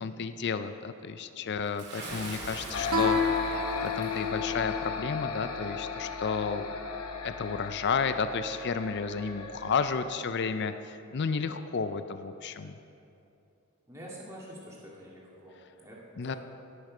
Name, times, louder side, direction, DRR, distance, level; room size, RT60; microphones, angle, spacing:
voice 1, 0.0-3.5 3.8-6.6 7.2-12.8 16.2-16.3, left 5 dB, 50° left, 10 dB, 0.4 m, -32 dB
Bathtub (filling or washing) / Splash splatter, 1.8-4.3, right 2 dB, 50° right, 2.2 m, -42 dB
sound 1, 2.7-10.2, left 5 dB, 80° left, 1.0 m, -36 dB
Guitar, 2.9-6.1, left 3 dB, 80° right, 1.7 m, -32 dB
voice 2, 13.9-15.6 15.8-16.4, equal, 15° right, -5 dB, 2.0 m, -46 dB
17.0 x 6.6 x 5.0 m, 2.7 s
head